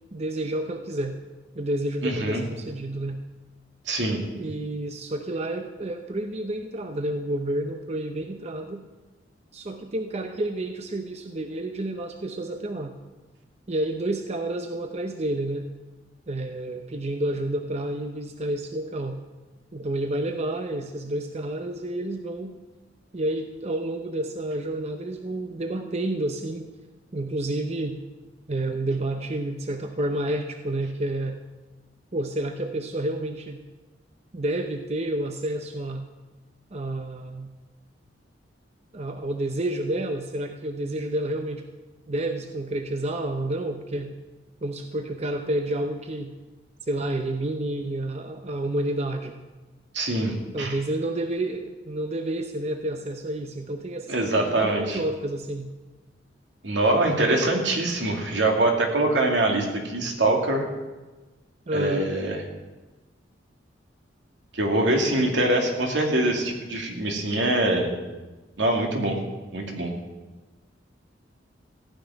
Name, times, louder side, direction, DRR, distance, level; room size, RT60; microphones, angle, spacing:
voice 1, 0.1-1.1 1.5-3.2 4.3-8.9 9.5-12.9 13.7-15.7 16.3-19.2 19.7-22.6 23.1-26.7 27.1-28.0 28.5-31.4 32.1-33.6 34.3-36.0 36.7-37.5 38.9-41.6 42.1-44.1 44.6-46.3 46.9-49.3 50.5-55.7 61.7-62.1, right 1 dB, 35° right, 6 dB, 0.7 m, -29 dB
voice 2, 2.0-2.4 3.9-4.2 49.9-50.7 54.1-55.0 56.6-60.6 61.7-62.4 64.5-67.9 68.6-69.2 69.5-69.9, right 2 dB, 80° right, 1 dB, 2.4 m, -24 dB
15.5 x 6.1 x 9.8 m, 1.2 s
head